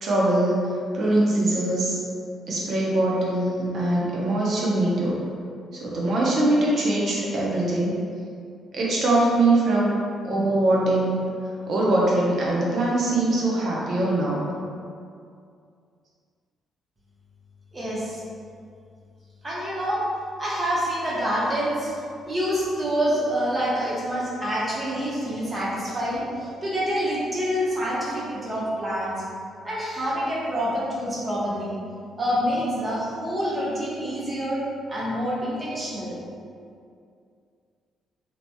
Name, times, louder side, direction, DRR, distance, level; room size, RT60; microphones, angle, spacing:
voice 1, 0.0-2.0 2.5-5.2 5.7-8.0 8.7-10.0 10.2-11.2 11.7-14.4, right 2 dB, 60° right, -4 dB, 0.7 m, -22 dB
voice 2, 17.7-18.2 19.4-20.0 20.4-21.9 22.3-29.2 29.6-31.8 32.2-34.6 34.9-36.2, equal, 30° right, -7 dB, 0.9 m, -27 dB
2.8 x 2.8 x 2.2 m, 2.4 s
cardioid pair, 90°, 0 cm